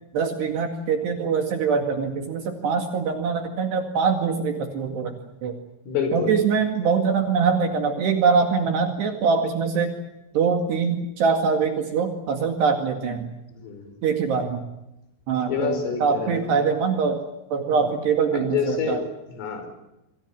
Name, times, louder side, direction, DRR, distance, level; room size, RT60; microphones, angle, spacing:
voice 1, 0.1-5.1 5.4-5.5 6.1-9.9 10.3-13.3 14.0-14.7 15.3-17.2 17.5-19.0, right 5 dB, 60° right, 5 dB, 3.9 m, -23 dB
voice 2, 5.9-6.4 13.5-14.0 15.5-16.5 18.3-19.7, left 6 dB, 80° left, 7 dB, 7.7 m, -28 dB
27.5 x 23.0 x 7.5 m, 0.89 s
omnidirectional pair, 5.8 m